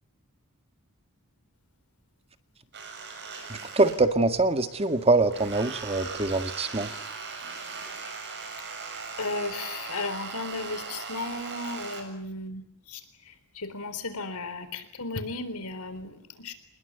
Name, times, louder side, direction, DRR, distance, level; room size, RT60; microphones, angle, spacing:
sound 1, 2.7-4.4 4.7-12.0, right 5 dB, 50° right, 7.3 m, -39 dB
voice 1, 3.5-6.9, right 2 dB, 25° right, 9 dB, 1.9 m, -24 dB
voice 2, 9.2-16.5, left 3 dB, 85° left, 12 dB, 3.8 m, -35 dB
27.5 x 20.5 x 9.3 m, 0.69 s
head